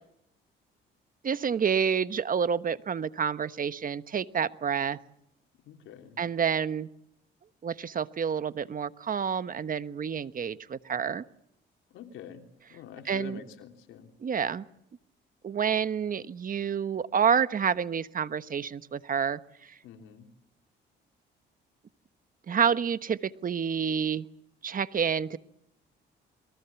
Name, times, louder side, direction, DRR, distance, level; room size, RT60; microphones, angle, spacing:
voice 1, 1.2-5.0 6.2-6.9 7.6-11.2 13.0-13.4 14.2-14.6 15.4-19.7 22.5-24.2 24.6-25.4, right 7 dB, 45° right, 13 dB, 1.2 m, -28 dB
voice 2, 5.6-6.2 11.9-14.1 19.8-20.3, left 8 dB, 90° left, 5 dB, 3.3 m, -46 dB
29.0 x 22.5 x 7.2 m, 0.79 s
cardioid pair, 90°, 20 cm